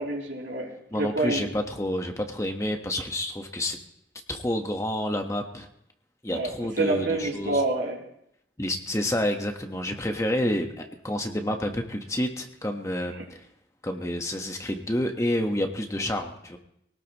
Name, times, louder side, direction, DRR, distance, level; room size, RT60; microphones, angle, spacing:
voice 1, 0.0-1.4 6.3-6.5 6.8-8.0 13.2-13.3, right 2 dB, 80° right, -1 dB, 3.3 m, -27 dB
voice 2, 0.9-3.8 4.3-5.7 6.2-7.6 8.6-13.4 13.8-16.6, left 1 dB, 15° left, 4 dB, 1.3 m, -29 dB
23.5 x 18.0 x 3.1 m, 0.75 s
head